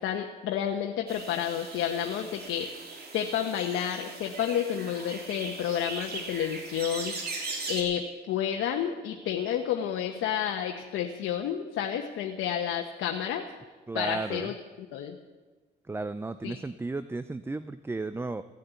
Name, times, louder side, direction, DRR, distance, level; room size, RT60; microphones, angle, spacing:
voice 1, 0.0-2.7 3.1-7.2 7.7-13.5 13.9-14.5 14.9-15.2 16.4-16.6, left 9 dB, 90° left, 3 dB, 1.0 m, -30 dB
sound 1, 1.1-7.8, right 3 dB, 50° right, 3.1 m, -39 dB
voice 2, 13.9-14.5 15.9-18.4, right 3 dB, 10° right, 12 dB, 0.5 m, -34 dB
16.0 x 8.8 x 8.2 m, 1.3 s
cardioid pair, 90°, 20 cm